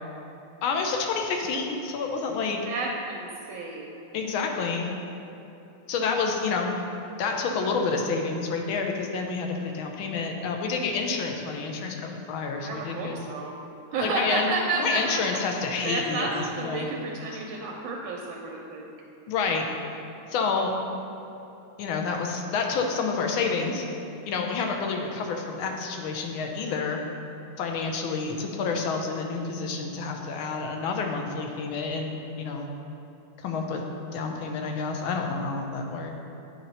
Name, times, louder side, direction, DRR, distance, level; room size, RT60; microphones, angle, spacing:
voice 1, 0.6-2.6 4.1-4.9 5.9-6.7 7.2-13.2 14.0-14.5 14.8-16.3 16.6-16.9 17.3-17.4 19.3-19.7 20.3-20.7 21.8-23.8 24.3-27.0 27.6-32.7 33.4-33.8 34.1-36.1, left 4 dB, 90° left, 2 dB, 1.5 m, -29 dB
voice 2, 2.6-4.0 12.6-13.5 13.9-18.9, right 3 dB, 80° right, -1 dB, 1.4 m, -31 dB
8.7 x 2.9 x 5.3 m, 3.0 s
omnidirectional pair, 2.2 m